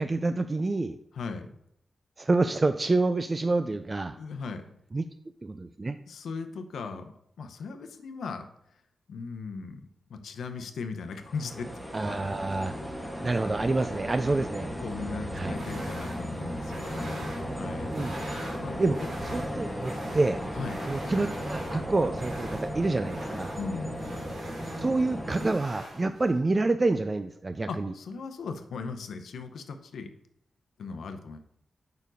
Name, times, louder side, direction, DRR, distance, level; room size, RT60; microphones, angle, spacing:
voice 1, 0.0-1.0 2.2-4.2 4.9-5.0 5.4-6.0 11.9-12.7 13.2-14.7 15.3-15.6 17.9-18.2 18.8-19.0 19.2-20.4 20.9-23.5 24.8-27.9, right 3 dB, 30° right, 9 dB, 0.3 m, -27 dB
voice 2, 1.1-1.5 4.2-4.6 6.1-7.1 7.4-8.5 9.1-11.7 12.1-12.2 14.8-17.3 17.6-17.9 18.5-18.8 20.5-20.8 23.6-24.2 27.7-30.1 30.8-31.4, left 4 dB, 90° left, 7 dB, 0.7 m, -38 dB
sound 1, 11.1-25.5, equal, 5° right, 1.3 m, -35 dB
sound 2, 15.4-26.4, right 1 dB, 75° right, 2.6 m, -44 dB
5.2 x 4.5 x 6.0 m, 0.74 s
cardioid pair, 85°, 0 cm